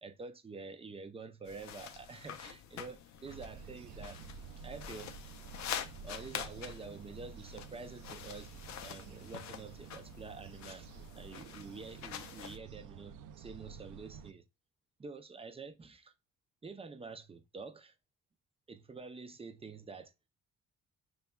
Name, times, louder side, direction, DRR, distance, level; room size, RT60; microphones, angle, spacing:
voice 1, 0.0-4.2 4.6-5.2 5.8-8.5 8.8-10.9 11.2-14.4 15.0-16.1 16.6-17.9 18.7-20.1, right 4 dB, 20° right, 0.5 m, -48 dB
sound 1, 1.5-12.6, left 9 dB, 65° left, 0.5 m, -46 dB
sound 2, 3.2-14.3, right 6 dB, 80° right, 0.5 m, -51 dB
5.6 x 3.1 x 2.2 m
cardioid pair, 90°, 30 cm